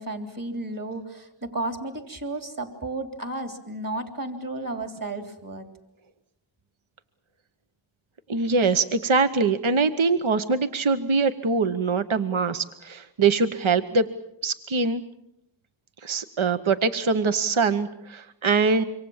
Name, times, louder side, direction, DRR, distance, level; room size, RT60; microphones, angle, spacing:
voice 1, 0.0-5.7, right 2 dB, 40° right, 6 dB, 3.4 m, -33 dB
voice 2, 8.3-14.1 14.4-15.0 16.0-18.8, right 4 dB, 70° right, 9 dB, 1.1 m, -23 dB
26.5 x 24.5 x 7.2 m, 0.81 s
wide cardioid pair, 40°, 49 cm